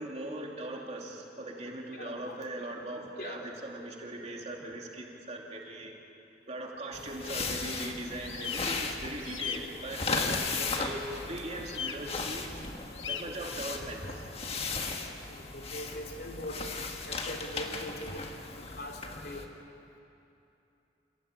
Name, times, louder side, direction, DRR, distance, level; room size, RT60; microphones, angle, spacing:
voice 1, 0.0-5.9 6.5-12.5 13.1-14.3, right 1 dB, 35° right, 0 dB, 3.1 m, -40 dB
voice 2, 1.9-2.4 3.2-3.4 15.2-16.7 17.1-18.3 18.8-19.4, left 1 dB, 55° left, 2 dB, 3.3 m, -41 dB
sound 1, 6.9-19.5, left 4 dB, 35° left, 1.7 m, -36 dB
sound 2, 8.2-8.6 9.2-9.6 11.7-12.0 12.9-13.2, left 8 dB, 85° left, 1.4 m, -37 dB
28.5 x 16.5 x 9.1 m, 2.8 s
head